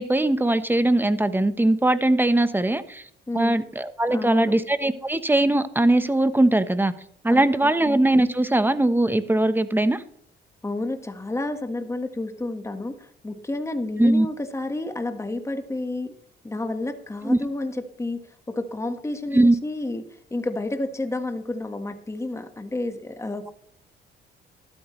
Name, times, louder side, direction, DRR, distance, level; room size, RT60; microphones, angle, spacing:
voice 1, 0.0-3.0 3.3-6.9 7.2-10.0 14.0-14.3 17.2-17.4 19.3-19.5, right 1 dB, 10° right, 11 dB, 1.1 m, -20 dB
voice 2, 3.3-3.6 4.1-4.6 7.3-7.7 10.6-16.1 16.4-18.2 18.5-20.0 20.3-23.5, left 2 dB, 15° left, 7 dB, 1.6 m, -30 dB
14.0 x 12.5 x 3.2 m, 0.66 s
cardioid pair, 90°, 20 cm